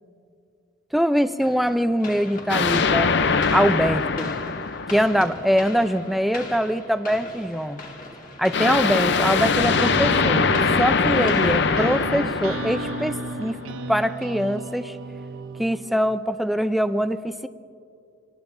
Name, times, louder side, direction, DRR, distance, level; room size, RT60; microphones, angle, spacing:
voice 1, 0.9-3.1 3.5-4.3 4.9-7.8 8.4-10.5 10.8-13.6 13.9-15.0 15.6-17.5, equal, ahead, 11 dB, 0.4 m, -23 dB
sound 1, 1.4-12.7, left 2 dB, 40° left, 1.7 m, -40 dB
sound 2, 2.5-5.6 8.5-13.7, left 5 dB, 55° left, 0.6 m, -22 dB
sound 3, 9.4-16.2, right 3 dB, 80° right, 0.6 m, -34 dB
26.5 x 19.5 x 2.6 m, 2.5 s
head